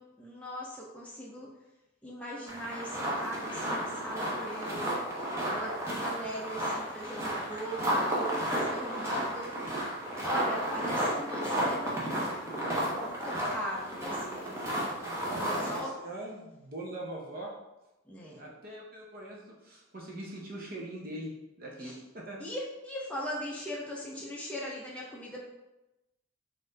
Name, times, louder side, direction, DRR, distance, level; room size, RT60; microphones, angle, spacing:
voice 1, 0.0-1.5 2.0-4.9 5.5-9.6 10.2-12.0 13.0-15.4 15.6-15.9 18.1-18.4 21.8-21.9 22.4-25.4, equal, 5° left, -4 dB, 0.5 m, -40 dB
sound 1, 2.5-15.8, equal, 15° right, 0.8 m, -32 dB
voice 2, 15.1-17.5 18.4-21.3 21.6-22.4, right 1 dB, 45° right, -2 dB, 0.7 m, -42 dB
4.2 x 2.6 x 3.8 m, 0.97 s
head